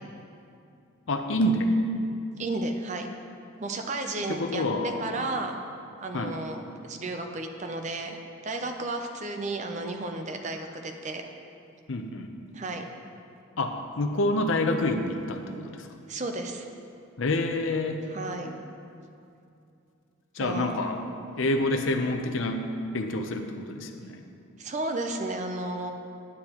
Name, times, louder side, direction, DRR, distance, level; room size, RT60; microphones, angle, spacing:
voice 1, 1.1-1.7 4.3-5.0 6.1-6.4 11.9-12.3 13.6-15.9 17.2-18.0 20.3-21.0 21.4-24.2, left 1 dB, 65° left, 5 dB, 0.6 m, -27 dB
voice 2, 2.4-3.1 3.6-5.6 6.0-8.2 8.4-11.2 12.5-12.8 16.1-16.7 18.1-18.5 20.4-20.8 24.6-25.9, right 2 dB, 35° right, 5 dB, 0.5 m, -33 dB
9.8 x 9.7 x 3.0 m, 2.6 s
head